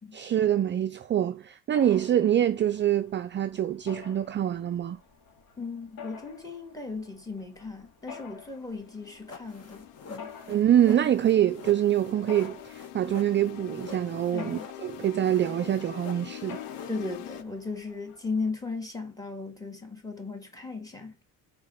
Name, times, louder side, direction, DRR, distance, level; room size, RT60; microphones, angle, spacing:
voice 1, 0.1-5.0 10.5-16.6, right 11 dB, 30° right, 0.4 m, -25 dB
Mechanisms, 1.7-18.5, left 6 dB, 65° left, 2.2 m, -50 dB
voice 2, 5.6-10.3 14.3-14.7 16.9-21.1, left 3 dB, 10° left, 2.0 m, -36 dB
sound 1, 8.3-17.4, left 15 dB, 85° left, 0.6 m, -45 dB
sound 2, 9.3-17.5, left 4 dB, 40° left, 1.4 m, -46 dB
4.7 x 4.3 x 5.8 m
cardioid pair, 110°, 39 cm